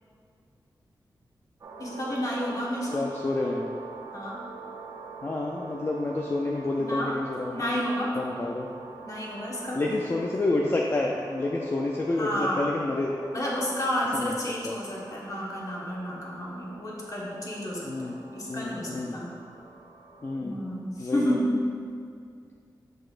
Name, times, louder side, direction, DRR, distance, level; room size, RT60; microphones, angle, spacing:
sound 1, 1.6-20.4, right 4 dB, 50° right, 0.5 m, -45 dB
voice 1, 1.8-3.0 4.1-4.4 6.7-7.1 7.5-8.2 9.0-9.9 10.4-10.5 12.2-12.7 13.3-19.3 20.4-21.6, equal, 45° left, -4 dB, 1.2 m, -31 dB
voice 2, 2.9-3.7 5.2-7.6 8.1-8.7 9.7-13.1 14.1-14.3 14.6-14.7 17.8-18.2 18.5-19.2 20.2-20.6 21.0-21.4, left 2 dB, 30° left, -1 dB, 0.4 m, -29 dB
6.6 x 6.2 x 2.5 m, 2.3 s
wide cardioid pair, 115°, 8 cm